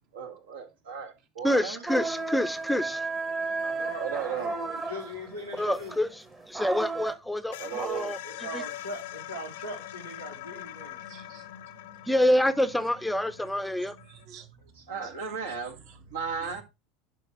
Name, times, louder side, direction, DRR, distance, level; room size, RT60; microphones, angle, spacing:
voice 1, 0.1-1.8 4.0-4.5 7.6-8.1 14.8-16.6, right 6 dB, 65° right, 1.4 m, -35 dB
voice 2, 1.4-3.1 5.6-6.1 6.5-8.6 12.0-14.0, left 1 dB, 5° left, 0.6 m, -27 dB
sound 1, 1.9-7.1, right 3 dB, 20° right, 1.1 m, -34 dB
sound 2, 3.4-6.8 7.1-7.2 7.5-14.2, left 14 dB, 60° left, 0.6 m, -44 dB
voice 3, 3.7-5.9 8.2-11.0 15.3-15.4, equal, 85° right, 2.0 m, -40 dB
voice 4, 11.0-11.5 14.1-15.4 15.8-16.0 16.4-16.5, right 6 dB, 50° right, 1.4 m, -51 dB
11.0 x 5.2 x 3.0 m
figure-of-eight pair, 75°, 0 cm